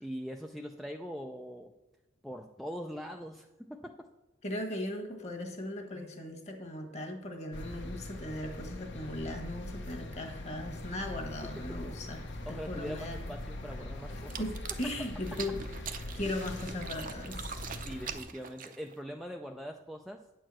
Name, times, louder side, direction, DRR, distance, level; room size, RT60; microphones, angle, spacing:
voice 1, 0.0-1.7 2.2-3.9 11.7-11.8 12.5-14.4 17.8-20.2, equal, ahead, 3 dB, 0.4 m, -42 dB
voice 2, 4.4-13.2 14.4-15.6 16.1-17.6, left 1 dB, 35° left, 5 dB, 1.4 m, -38 dB
sound 1, 7.5-18.2, left 1 dB, 60° left, 1.0 m, -42 dB
sound 2, 14.2-19.0, right 7 dB, 45° right, 0.6 m, -43 dB
9.2 x 4.6 x 7.5 m, 1.0 s
head